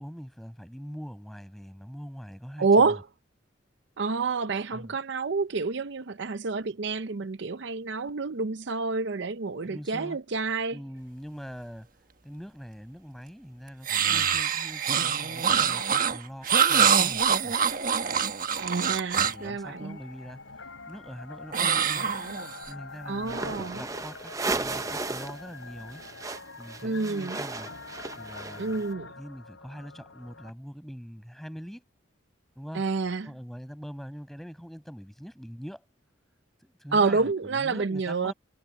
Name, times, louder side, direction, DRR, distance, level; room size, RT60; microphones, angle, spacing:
voice 1, 0.0-3.0 4.7-5.0 9.6-10.2 10.7-11.9 12.2-17.6 19.2-20.4 20.9-22.2 22.7-26.0 26.6-27.7 28.2-28.9 29.2-31.8 32.5-32.8 33.2-35.8 36.6-38.3, equal, ahead, 6.5 m, -43 dB
voice 2, 2.6-3.0 4.0-10.8 18.6-20.0 23.1-23.8 26.8-27.4 28.6-29.1 32.7-33.3 36.9-38.3, right 4 dB, 65° right, 0.6 m, -28 dB
sound 1, 13.8-19.5 21.5-22.7, right 7 dB, 45° right, 1.3 m, -25 dB
sound 2, 19.2-30.5, left 3 dB, 80° left, 6.1 m, -45 dB
sound 3, 23.2-25.4 25.7-28.8, right 3 dB, 15° right, 0.6 m, -35 dB
head